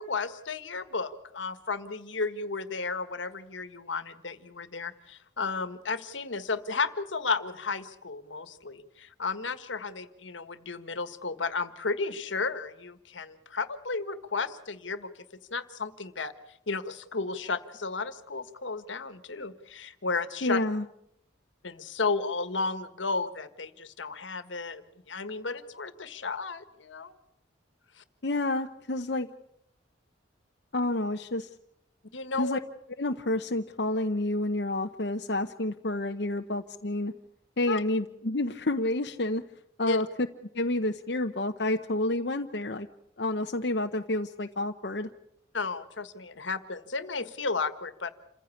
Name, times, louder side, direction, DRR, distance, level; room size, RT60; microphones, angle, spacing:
voice 1, 0.0-15.1 15.5-20.6 21.6-24.8 25.1-27.1 28.0-28.1 32.1-32.6 37.7-37.8 39.9-40.0 45.5-48.1, left 4 dB, 80° left, 12 dB, 1.6 m, -33 dB
voice 2, 20.4-20.8 28.2-29.3 30.7-31.5 32.4-32.6 33.0-37.1 37.6-39.4 39.8-40.1 40.5-42.9 43.2-45.1, left 2 dB, 60° left, 4 dB, 0.9 m, -29 dB
28.0 x 15.5 x 8.4 m, 0.75 s
head